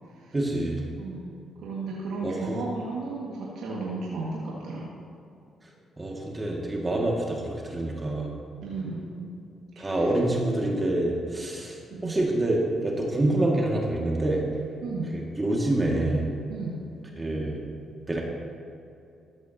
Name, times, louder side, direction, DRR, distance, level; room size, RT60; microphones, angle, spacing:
voice 1, 0.3-0.8 2.2-2.6 6.0-8.3 9.8-14.4 15.1-16.3 17.2-17.6 18.1-18.2, right 1 dB, 25° right, -1 dB, 2.3 m, -26 dB
voice 2, 1.0-4.9 8.6-9.4 9.8-10.1 11.9-12.2 14.8-15.2 16.5-16.8, right 3 dB, 75° right, -5 dB, 2.1 m, -34 dB
14.5 x 13.0 x 3.0 m, 2.6 s
supercardioid pair, 60°, 0 cm